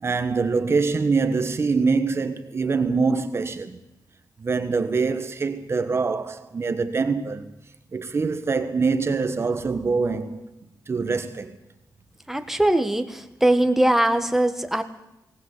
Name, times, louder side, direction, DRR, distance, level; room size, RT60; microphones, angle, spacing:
voice 1, 0.0-3.8 4.4-7.5 7.9-10.5 10.9-11.5, right 4 dB, 40° right, 1.4 m, -24 dB
voice 2, 12.3-14.8, right 1 dB, 5° right, 1.5 m, -21 dB
19.5 x 19.0 x 8.1 m
wide cardioid pair, 130°, 7 cm